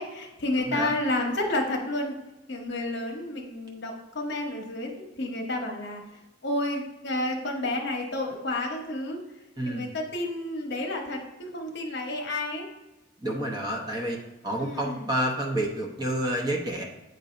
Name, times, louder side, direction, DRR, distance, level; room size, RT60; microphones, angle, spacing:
voice 1, 0.0-2.1 2.5-6.0 6.4-9.2 9.6-12.6 14.6-15.1, left 1 dB, 55° left, 2 dB, 0.9 m, -30 dB
voice 2, 0.6-0.9 9.6-9.9 13.2-14.2 14.4-16.8, right 1 dB, 20° right, -1 dB, 0.8 m, -29 dB
8.0 x 2.7 x 5.0 m, 1.0 s
head